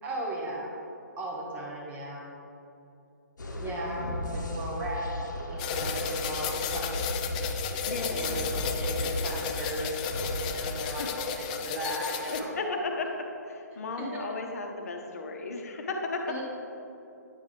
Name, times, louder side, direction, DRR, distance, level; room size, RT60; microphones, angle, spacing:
voice 1, 0.0-0.7 1.2-2.2 3.5-7.2 7.7-12.5 13.7-14.2 16.3-16.4, right 1 dB, 15° right, -3 dB, 1.2 m, -37 dB
sound 1, 3.4-10.9, left 1 dB, 80° left, 0.9 m, -36 dB
voice 2, 3.6-4.2 7.9-8.4 11.0-11.1 12.3-16.4, left 3 dB, 55° left, 3 dB, 0.9 m, -35 dB
sound 2, 5.6-12.4, left 7 dB, 25° left, 0.4 m, -33 dB
9.2 x 3.1 x 5.0 m, 2.8 s
figure-of-eight pair, 140°, 10 cm